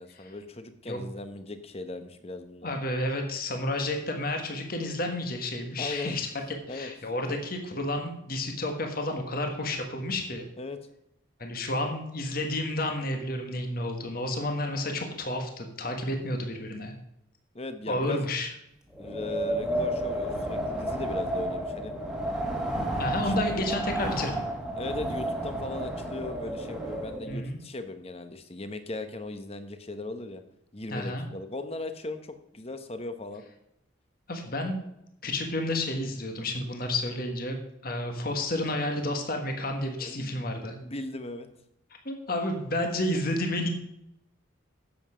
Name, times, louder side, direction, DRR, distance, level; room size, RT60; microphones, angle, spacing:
voice 1, 0.0-2.7 5.8-6.2 6.7-6.9 7.3-7.4 10.6-10.8 17.5-18.2 19.0-21.9 22.8-23.7 24.8-30.4 30.7-33.4 40.0-41.5, left 2 dB, 30° left, 9 dB, 0.9 m, -38 dB
voice 2, 2.6-6.3 6.7-10.5 11.4-16.9 17.9-18.5 23.0-24.5 27.3-27.6 30.9-31.2 34.3-34.8 35.2-37.6 37.8-40.8 42.0-43.7, left 1 dB, 45° left, 4 dB, 1.5 m, -31 dB
Wind, 18.9-27.4, right 1 dB, 5° right, 1.6 m, -31 dB
10.5 x 7.7 x 5.0 m, 0.82 s
head